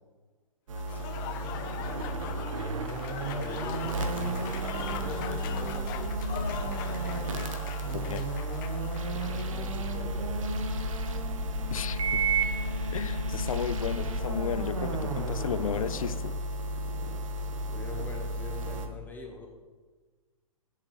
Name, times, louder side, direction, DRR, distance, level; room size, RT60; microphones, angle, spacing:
Applause / Crowd, 0.7-9.6, left 9 dB, 35° left, 0.8 m, -41 dB
sound 1, 0.7-18.9, right 2 dB, 65° right, 1.4 m, -32 dB
voice 1, 3.2-4.5 4.8-6.3 9.1-10.5 15.2-15.6 16.9-17.1 17.7-19.5, left 3 dB, 10° left, 1 dB, 1.4 m, -43 dB
voice 2, 7.9-8.3 11.7-12.2 12.9-16.3, left 8 dB, 70° left, 14 dB, 0.6 m, -34 dB
16.0 x 7.4 x 3.3 m, 1.4 s
hypercardioid pair, 125°, 18 cm